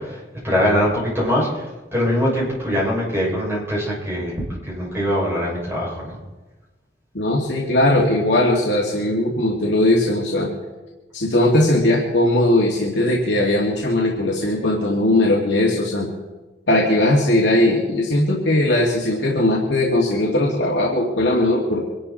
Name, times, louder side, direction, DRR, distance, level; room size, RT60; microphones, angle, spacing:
voice 1, 0.0-6.2, equal, 15° right, -5 dB, 6.8 m, -22 dB
voice 2, 7.1-10.5 11.1-16.1 16.7-21.9, left 1 dB, 80° left, -3 dB, 2.5 m, -19 dB
24.5 x 12.0 x 4.4 m, 1.2 s
head